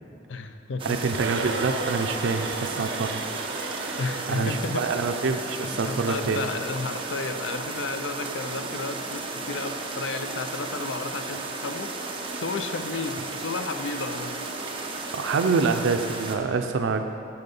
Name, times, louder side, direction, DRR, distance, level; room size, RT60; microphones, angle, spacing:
voice 1, 0.3-1.0 4.0-4.8 5.6-14.4, left 3 dB, 70° left, 8 dB, 0.5 m, -33 dB
sound 1, 0.8-16.4, right 3 dB, 30° right, 0.9 m, -34 dB
voice 2, 0.8-3.2 4.3-6.4 15.1-17.0, right 4 dB, 85° right, 6 dB, 0.5 m, -26 dB
sound 2, 1.1-5.2, right 3 dB, 65° right, 0.8 m, -34 dB
9.5 x 6.9 x 5.3 m, 2.5 s
head